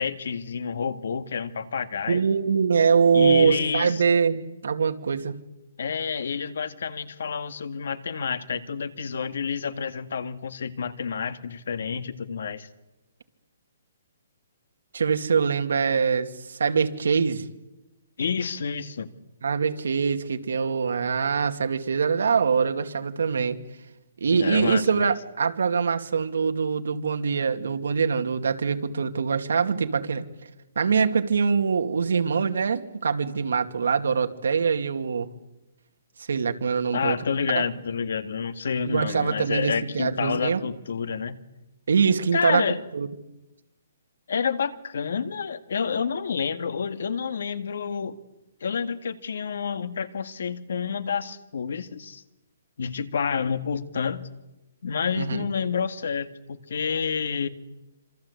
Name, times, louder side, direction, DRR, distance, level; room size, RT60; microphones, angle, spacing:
voice 1, 0.0-2.3 3.1-4.0 5.8-12.7 18.2-19.1 24.3-25.1 36.9-41.4 42.3-42.8 44.3-48.2 48.6-52.2 52.8-54.3 54.8-57.5, left 6 dB, 60° left, 11 dB, 1.9 m, -29 dB
voice 2, 2.1-5.4 14.9-17.4 19.4-23.6 24.2-30.2 30.8-35.3 36.3-37.2 37.5-37.6 38.9-40.6 41.9-42.6 42.9-43.1 55.2-55.4, right 6 dB, 80° right, 7 dB, 2.4 m, -23 dB
27.0 x 26.5 x 8.4 m, 1.0 s
hypercardioid pair, 175°, 0 cm